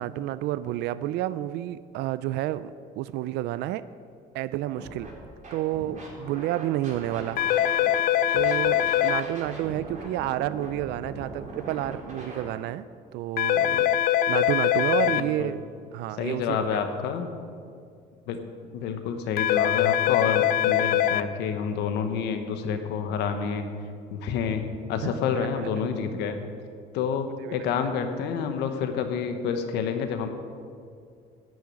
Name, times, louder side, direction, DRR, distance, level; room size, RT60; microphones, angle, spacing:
voice 1, 0.0-3.9 4.3-5.1 5.5-7.4 8.3-12.8 13.1-15.6 15.9-16.8 25.0-25.1 27.5-27.6, right 14 dB, 85° right, 16 dB, 0.4 m, -30 dB
Scratching (performance technique), 4.7-5.1 5.4-8.0 8.3-12.5, right 2 dB, 45° right, 3.5 m, -40 dB
sound 1, 7.4-9.2 13.4-15.2 19.4-21.2, left 11 dB, 60° left, 0.4 m, -22 dB
voice 2, 15.1-15.5 16.2-17.3 18.3-18.4 18.7-23.7 24.1-26.4 26.9-30.3, left 6 dB, 85° left, 7 dB, 1.1 m, -28 dB
10.5 x 6.5 x 8.6 m, 2.3 s
cardioid pair, 110°, 17 cm